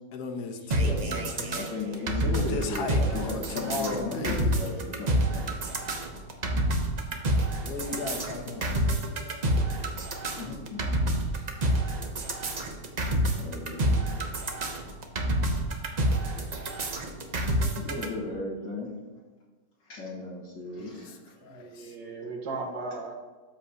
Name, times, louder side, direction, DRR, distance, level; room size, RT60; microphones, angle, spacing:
voice 1, 0.1-1.5 2.4-4.5 7.7-8.8 20.8-20.9 21.4-21.9, left 3 dB, 65° left, 4 dB, 1.4 m, -36 dB
sound 1, 0.7-18.1, right 1 dB, 50° right, 0.5 m, -28 dB
voice 2, 0.8-5.6 6.4-6.6 7.1-7.2 7.9-8.0 10.3-10.8 11.7-11.8 13.0-14.0 17.7-18.9 19.8-21.1, left 2 dB, 85° left, -6 dB, 2.3 m, -36 dB
voice 3, 21.4-23.1, right 3 dB, 75° right, 1 dB, 1.9 m, -37 dB
13.0 x 5.2 x 2.8 m, 1.3 s
omnidirectional pair, 2.0 m